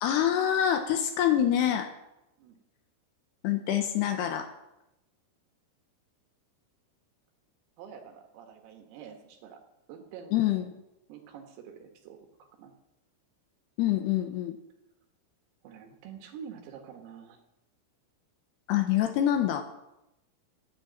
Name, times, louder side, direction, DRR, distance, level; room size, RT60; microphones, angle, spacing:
voice 1, 0.0-1.9 3.4-4.5 10.3-10.7 13.8-14.6 18.7-19.6, left 10 dB, 80° left, 7 dB, 2.5 m, -26 dB
voice 2, 7.8-9.6 9.9-10.3 11.1-12.7 15.6-17.4, right 7 dB, 80° right, 4 dB, 4.2 m, -47 dB
15.0 x 10.0 x 8.9 m, 0.90 s
omnidirectional pair, 6.0 m